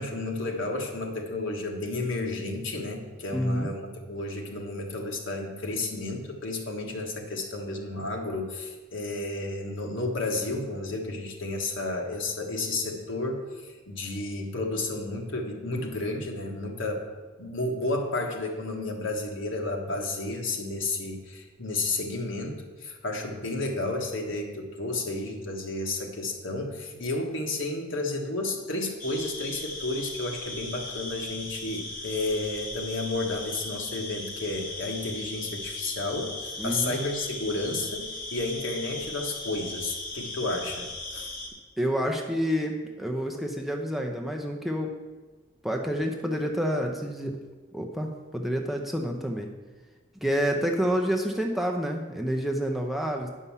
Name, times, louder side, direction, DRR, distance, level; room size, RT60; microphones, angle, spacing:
voice 1, 0.0-17.1 17.4-41.3, left 2 dB, 70° left, 2 dB, 1.6 m, -32 dB
voice 2, 3.3-3.7 36.6-37.0 41.8-44.9 45.6-47.4 47.7-49.5 50.2-53.3, equal, ahead, 2 dB, 0.7 m, -28 dB
sound 1, 29.0-41.5, left 2 dB, 40° left, 2.2 m, -38 dB
9.5 x 5.5 x 7.2 m, 1.3 s
head